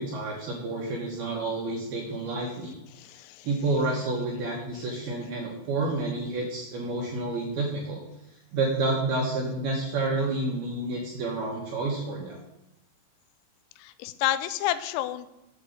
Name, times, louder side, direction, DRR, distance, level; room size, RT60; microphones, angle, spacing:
voice 1, 0.0-2.8 3.4-8.0 8.5-12.4, right 2 dB, 75° right, -1 dB, 2.3 m, -29 dB
voice 2, 2.9-3.5 13.8-15.3, left 13 dB, 85° left, 12 dB, 3.2 m, -30 dB
8.3 x 7.3 x 5.1 m, 0.96 s
omnidirectional pair, 6.0 m